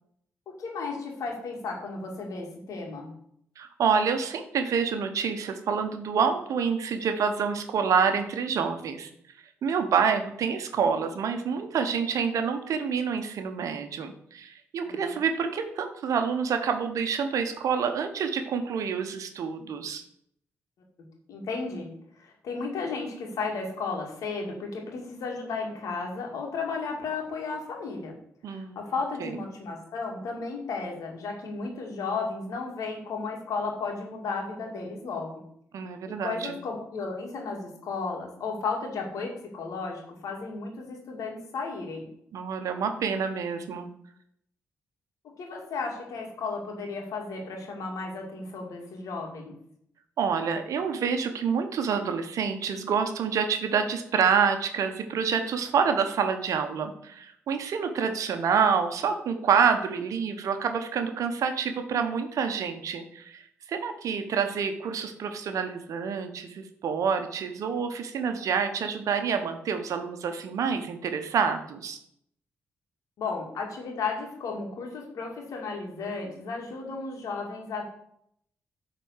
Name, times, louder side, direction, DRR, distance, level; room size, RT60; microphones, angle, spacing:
voice 1, 0.6-3.1 14.9-15.2 21.3-21.9 22.2-28.1 28.5-35.4 36.2-42.1 45.4-49.6 73.2-77.8, left 4 dB, 75° left, 1 dB, 2.3 m, -34 dB
voice 2, 3.6-9.1 9.6-20.0 28.4-28.8 29.2-29.3 35.7-36.6 42.3-43.9 50.2-72.0, right 6 dB, 70° right, 7 dB, 1.0 m, -27 dB
9.1 x 4.2 x 6.5 m, 0.70 s
supercardioid pair, 50°, 6 cm